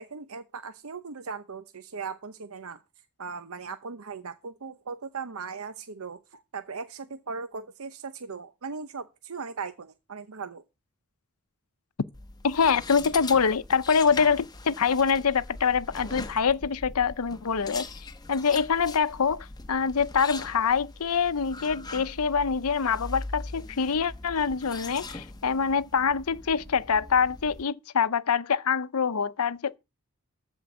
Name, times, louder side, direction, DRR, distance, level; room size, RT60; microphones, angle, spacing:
voice 1, 0.0-2.8 3.2-10.6, right 5 dB, 75° right, 0.8 m, -38 dB
sound 1, 12.1-27.6, left 3 dB, 20° left, 1.1 m, -41 dB
voice 2, 12.4-17.9 18.3-29.8, left 6 dB, 85° left, 0.7 m, -25 dB
14.0 x 4.6 x 8.2 m
head